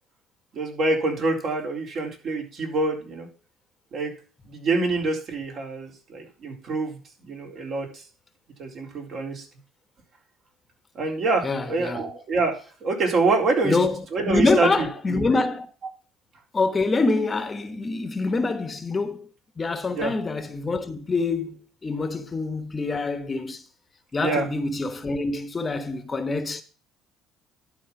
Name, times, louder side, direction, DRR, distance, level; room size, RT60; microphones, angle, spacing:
voice 1, 0.5-3.3 3.9-4.1 4.4-8.0 8.6-9.4 10.9-13.8 14.1-14.7 15.1-15.3 19.9-20.1 24.2-24.5, right 3 dB, 55° right, 4.0 m, -26 dB
voice 2, 11.4-12.1 13.6-14.0 14.2-15.7 16.5-19.3 19.6-23.6 24.1-26.6, left 3 dB, 25° left, 1.1 m, -25 dB
11.5 x 4.2 x 7.1 m
supercardioid pair, 90°, 0 cm